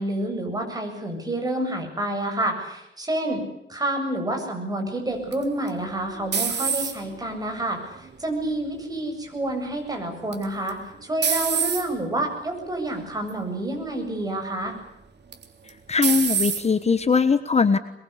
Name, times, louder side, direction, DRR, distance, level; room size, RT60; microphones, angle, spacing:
voice 1, 0.0-3.4 3.7-14.7, right 1 dB, 20° right, 3 dB, 7.9 m, -28 dB
sound 1, 5.3-7.2 7.8-8.3 10.3-10.7 11.2-11.8 12.6-12.9 13.3-13.4 15.3-15.7 16.0-16.6, right 6 dB, 60° right, 3.4 m, -25 dB
voice 2, 15.9-17.8, left 5 dB, 35° left, 11 dB, 1.2 m, -20 dB
23.5 x 22.5 x 8.4 m, 0.85 s
wide cardioid pair, 120°, 20 cm